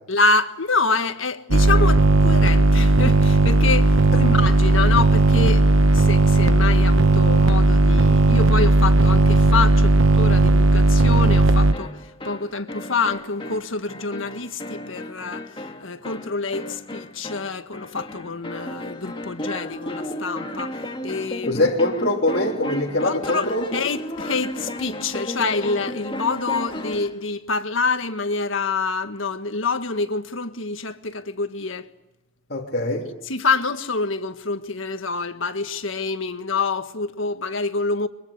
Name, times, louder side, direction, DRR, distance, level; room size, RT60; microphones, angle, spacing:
voice 1, 0.1-5.7 5.9-21.7 23.0-31.9 33.0-38.1, left 4 dB, 80° left, 1.6 m, -26 dB
sound 1, 1.5-11.7, right 2 dB, 80° right, 1.1 m, -16 dB
sound 2, 11.7-27.2, left 1 dB, 25° left, 1.9 m, -34 dB
voice 2, 21.5-23.6 32.5-33.1, left 1 dB, 50° left, 3.3 m, -23 dB
24.0 x 23.5 x 8.2 m
head